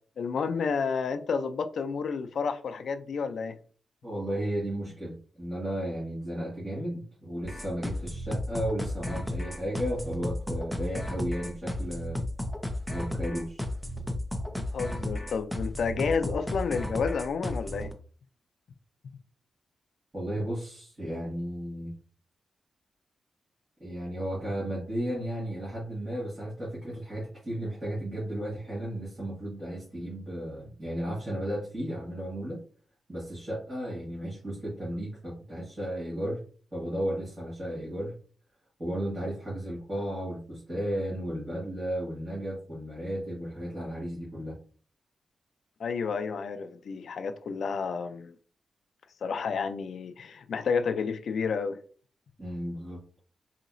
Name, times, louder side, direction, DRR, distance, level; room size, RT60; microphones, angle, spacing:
voice 1, 0.2-3.6 14.6-17.9 45.8-48.3 49.2-51.8, left 5 dB, 65° left, 0.3 m, -30 dB
voice 2, 4.0-12.2 12.9-13.6 20.1-21.9 23.8-32.6 33.1-36.4 36.7-38.1 38.8-44.6 52.4-53.0, equal, 25° right, 1.8 m, -34 dB
sound 1, 7.4-17.9, left 1 dB, ahead, 0.5 m, -34 dB
3.9 x 2.8 x 2.5 m
wide cardioid pair, 125°, 0 cm